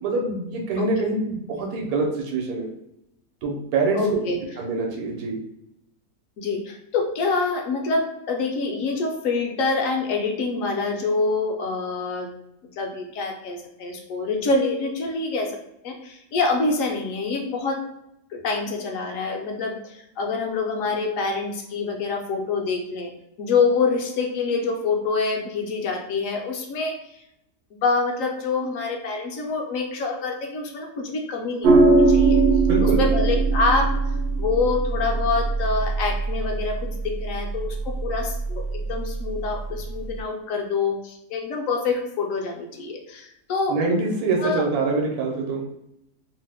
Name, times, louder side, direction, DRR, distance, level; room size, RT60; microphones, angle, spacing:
voice 1, 0.0-2.7 3.4-4.0 4.6-5.4 32.6-33.0 43.7-45.6, right 3 dB, 80° right, 0 dB, 1.2 m, -25 dB
voice 2, 3.9-4.4 6.4-12.3 12.8-15.6 15.8-17.8 18.3-23.1 23.4-27.2 27.7-32.4 32.8-33.9 34.4-43.8 44.4-44.6, left 4 dB, 70° left, 2 dB, 0.8 m, -26 dB
sound 1, 31.6-40.2, right 3 dB, 65° right, 0.7 m, -22 dB
2.9 x 2.1 x 3.3 m, 0.80 s
omnidirectional pair, 1.6 m